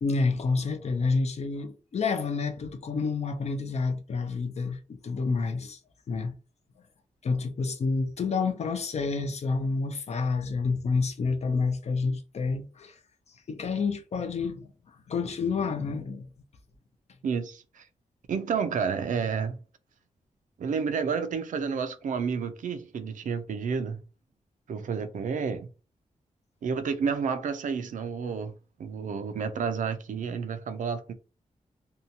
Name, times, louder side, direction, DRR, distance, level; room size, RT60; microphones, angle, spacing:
voice 1, 0.0-5.8 6.1-6.3 7.2-12.9 13.5-14.7 15.1-16.3, left 4 dB, 55° left, 0.5 m, -29 dB
voice 2, 17.2-17.8 18.3-19.6 20.6-24.0 24.7-25.7 26.6-28.5 28.8-31.1, right 6 dB, 80° right, 0.4 m, -30 dB
2.7 x 2.2 x 2.7 m
wide cardioid pair, 105°, 13 cm